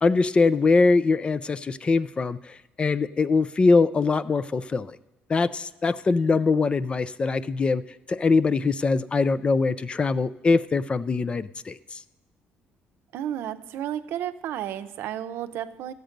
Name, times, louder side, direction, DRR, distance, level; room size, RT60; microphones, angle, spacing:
voice 1, 0.0-2.4 2.8-5.0 5.3-7.8 8.1-11.8, left 4 dB, 25° left, 16 dB, 0.4 m, -22 dB
voice 2, 13.1-15.9, right 11 dB, 75° right, 10 dB, 0.6 m, -32 dB
14.0 x 7.9 x 5.2 m, 0.96 s
cardioid pair, 120°, 4 cm